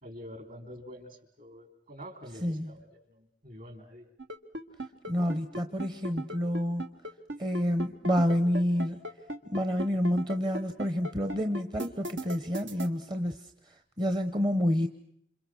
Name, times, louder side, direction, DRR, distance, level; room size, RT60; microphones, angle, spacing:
voice 1, 0.0-4.1, equal, 50° right, 7 dB, 3.6 m, -47 dB
sound 1, 4.2-12.9, right 1 dB, 80° right, 1.9 m, -36 dB
voice 2, 5.1-6.9 7.4-9.0 9.5-13.4 13.7-14.9, equal, 25° right, 8 dB, 1.0 m, -28 dB
28.0 x 27.5 x 6.2 m, 0.70 s
head